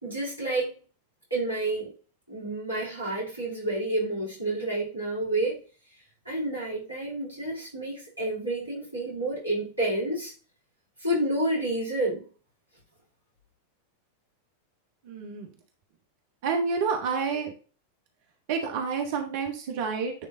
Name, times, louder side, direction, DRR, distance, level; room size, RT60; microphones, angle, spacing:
voice 1, 0.0-0.8 1.3-1.9 2.3-5.6 6.2-10.3 11.0-12.2, right 1 dB, 85° right, 3.0 m, -29 dB
voice 2, 15.0-15.5 16.4-17.5 18.5-20.1, right 5 dB, 50° right, 1.1 m, -29 dB
10.0 x 3.4 x 2.7 m
figure-of-eight pair, 90°, 0 cm